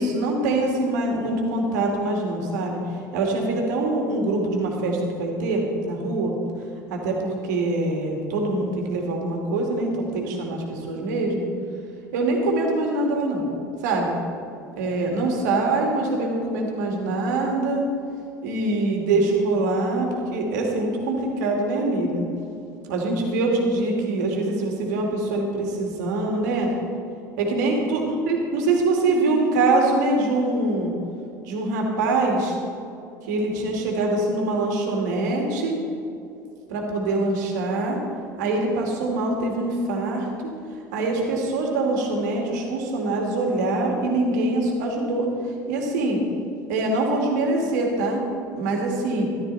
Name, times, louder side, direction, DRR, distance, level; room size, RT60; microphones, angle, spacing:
voice 1, 0.0-2.8 3.1-6.3 6.9-11.5 12.1-13.5 13.8-14.2 14.8-17.9 18.4-22.2 22.9-26.7 27.4-28.0 28.3-30.9 31.4-32.6 33.3-35.8 36.7-38.0 38.4-40.5 40.9-45.3 45.7-46.2 46.7-48.2 48.6-49.3, right 2 dB, 65° right, 1 dB, 2.4 m, -24 dB
14.0 x 12.0 x 4.2 m, 2.7 s
figure-of-eight pair, 70°, 10 cm